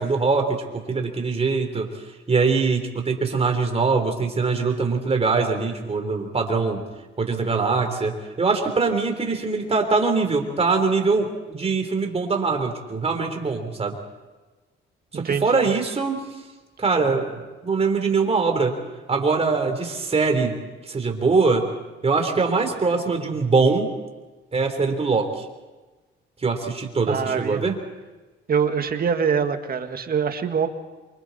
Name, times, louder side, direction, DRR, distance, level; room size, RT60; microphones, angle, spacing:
voice 1, 0.0-1.9 2.3-6.8 7.2-14.0 15.1-16.2 16.8-18.8 19.1-20.5 20.9-21.7 22.0-23.9 24.5-25.4 26.4-27.8, right 4 dB, 30° right, 4 dB, 3.8 m, -22 dB
voice 2, 15.1-15.7 27.1-27.6 28.5-30.7, right 6 dB, 50° right, 7 dB, 1.8 m, -24 dB
27.5 x 24.5 x 4.3 m, 1.2 s
cardioid pair, 90°, 20 cm